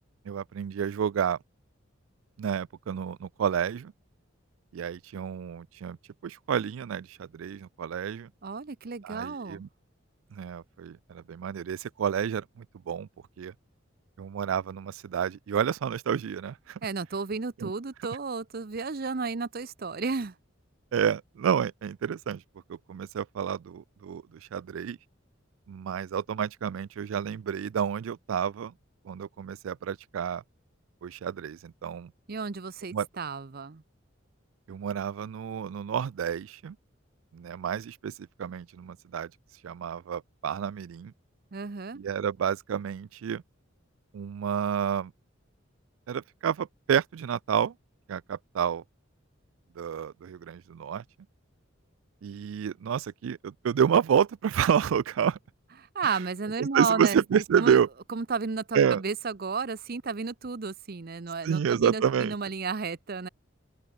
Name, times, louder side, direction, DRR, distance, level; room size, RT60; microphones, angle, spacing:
voice 1, 0.3-1.4 2.4-3.9 4.7-6.0 6.2-8.3 9.0-9.7 10.3-13.1 13.4-13.5 14.2-16.8 17.6-17.7 20.9-22.4 22.7-25.0 25.7-28.7 29.0-30.4 31.0-32.1 32.9-33.1 34.7-36.8 37.3-39.3 39.6-41.1 41.9-43.4 44.1-45.1 46.1-47.7 48.1-48.8 49.8-51.0 52.2-55.4 56.1-56.2 56.6-57.9 58.7-59.0 61.4-62.3, right 8 dB, 85° right, 0.3 m, -29 dB
voice 2, 8.4-9.6 16.8-20.3 32.3-33.8 41.5-42.0 55.9-57.2 57.6-57.8 58.1-63.3, right 4 dB, 50° right, 0.7 m, -32 dB
head